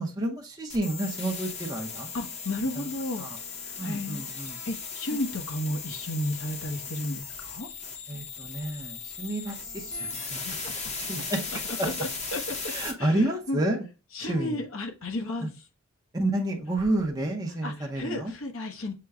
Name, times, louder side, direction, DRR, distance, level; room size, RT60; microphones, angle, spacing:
voice 1, 0.0-2.1 2.7-2.9 3.2-3.4 3.8-4.6 8.1-11.4 11.8-11.9 12.6-13.9 14.2-14.6 15.4-15.5 16.1-18.3, right 1 dB, 20° right, -1 dB, 0.7 m, -30 dB
sound 1, 0.7-12.9, left 5 dB, 30° left, 0.9 m, -37 dB
voice 2, 2.1-3.3 3.7-4.3 4.7-7.7 10.2-10.7 11.8-12.7 13.0-13.6 14.1-15.5 17.6-18.9, left 1 dB, 70° left, 3 dB, 1.0 m, -33 dB
6.6 x 2.2 x 3.5 m, 0.31 s
head